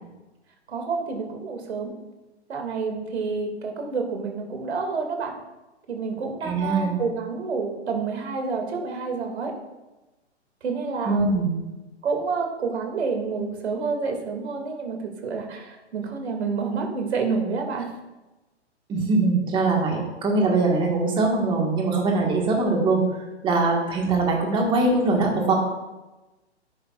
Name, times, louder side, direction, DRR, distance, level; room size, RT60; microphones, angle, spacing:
voice 1, 0.7-2.0 2.5-5.3 5.9-9.5 10.6-11.4 12.0-17.9, right 4 dB, 65° right, 3 dB, 2.4 m, -28 dB
voice 2, 6.4-7.0 11.0-11.6 18.9-25.5, right 3 dB, 15° right, 0 dB, 1.7 m, -22 dB
11.5 x 10.0 x 2.5 m, 1.1 s
hypercardioid pair, 145°, 35 cm